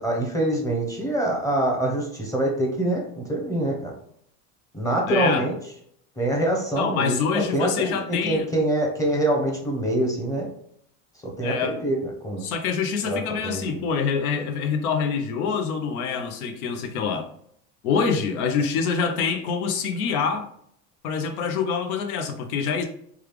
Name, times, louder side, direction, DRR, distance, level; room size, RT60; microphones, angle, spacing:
voice 1, 0.0-3.9 4.7-5.5 6.2-10.5 11.4-12.5 13.0-13.8, right 1 dB, 10° left, -1 dB, 0.7 m, -25 dB
voice 2, 5.1-5.4 6.8-8.5 11.4-11.8 12.4-17.3 17.8-20.5 21.0-22.8, left 6 dB, 85° left, 6 dB, 0.7 m, -25 dB
3.3 x 2.4 x 3.2 m, 0.68 s
supercardioid pair, 135°, 43 cm